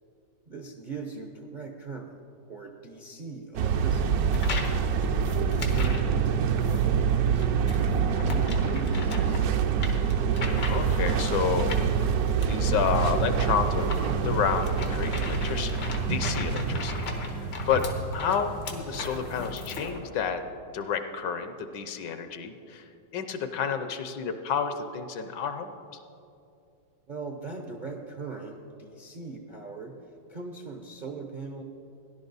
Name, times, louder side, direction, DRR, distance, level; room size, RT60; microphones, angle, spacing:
voice 1, 0.5-2.2 2.5-4.2 4.9-9.4 27.1-29.9 30.3-31.6, right 4 dB, 50° right, 2 dB, 0.5 m, -40 dB
sound 1, 3.6-17.8, right 6 dB, 70° right, 0.9 m, -26 dB
sound 2, 4.3-4.8 5.2-6.1 6.6-6.8 7.4-11.1 11.7-20.0, left 3 dB, 90° left, 2.0 m, -38 dB
voice 2, 10.4-12.1 12.5-17.0 17.7-17.8 18.1-20.4 20.7-22.9 23.1-25.7, left 7 dB, 75° left, 8 dB, 1.4 m, -30 dB
sound 3, 10.5-19.8, right 2 dB, 85° right, 2.0 m, -38 dB
17.0 x 11.0 x 4.0 m, 2.6 s
omnidirectional pair, 2.0 m